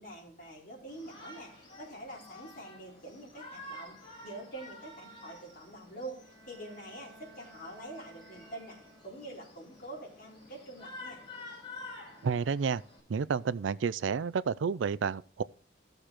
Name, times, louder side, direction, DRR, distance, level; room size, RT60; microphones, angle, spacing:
voice 1, 0.0-4.0 4.2-11.2, right 1 dB, 50° left, 4.2 m, -46 dB
Shout, 0.9-13.0, left 2 dB, 25° left, 4.8 m, -50 dB
Bowed string instrument, 6.1-9.5, right 2 dB, 5° right, 5.4 m, -57 dB
voice 2, 12.2-12.8 13.1-15.4, right 6 dB, 85° right, 0.4 m, -30 dB
16.5 x 6.5 x 2.9 m
head